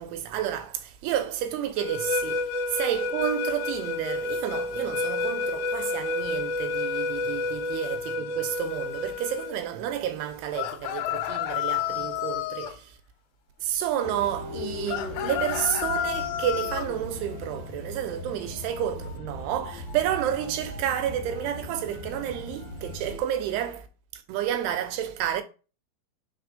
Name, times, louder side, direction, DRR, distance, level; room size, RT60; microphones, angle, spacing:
voice 1, 0.0-13.0 13.6-23.9 24.1-25.4, right 10 dB, 80° right, 2.6 m, -30 dB
sound 1, 1.8-9.6, left 2 dB, 75° left, 2.3 m, -30 dB
sound 2, 10.5-12.8 14.9-16.9, left 13 dB, 90° left, 3.0 m, -30 dB
sound 3, 14.0-23.2, left 2 dB, 50° left, 2.5 m, -38 dB
5.7 x 3.9 x 5.1 m
omnidirectional pair, 4.8 m